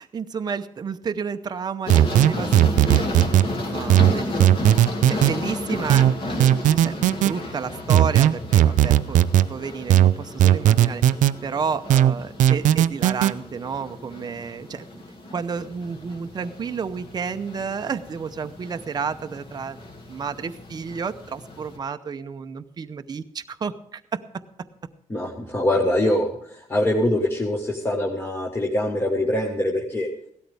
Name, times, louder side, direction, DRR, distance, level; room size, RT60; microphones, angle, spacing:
voice 1, 0.0-4.5 5.1-6.1 6.4-15.0 15.3-19.8 20.1-24.2, right 6 dB, 30° right, 8 dB, 0.7 m, -31 dB
sound 1, 1.9-21.8, left 2 dB, 40° left, 2.3 m, -34 dB
sound 2, 1.9-3.5 3.9-5.3 5.9-7.3 7.9-9.5 9.9-11.3 11.9-13.3, right 12 dB, 70° right, 0.5 m, -16 dB
voice 2, 25.1-30.1, left 1 dB, 15° left, -1 dB, 1.5 m, -23 dB
16.5 x 13.0 x 3.5 m, 0.68 s
cardioid pair, 140°, 13 cm